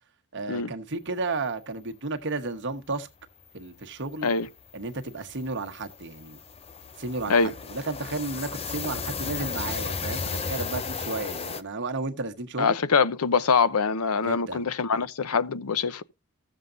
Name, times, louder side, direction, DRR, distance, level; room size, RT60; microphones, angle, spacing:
voice 1, 0.3-3.1 3.5-4.3 4.7-6.4 7.0-12.8 14.2-14.7, right 3 dB, 55° right, 1.2 m, -33 dB
sound 1, 3.2-3.3 3.6-3.8 4.1-11.6, left 5 dB, 25° left, 0.6 m, -35 dB
voice 2, 12.6-16.0, left 5 dB, 80° left, 0.7 m, -24 dB
15.0 x 7.4 x 2.6 m
head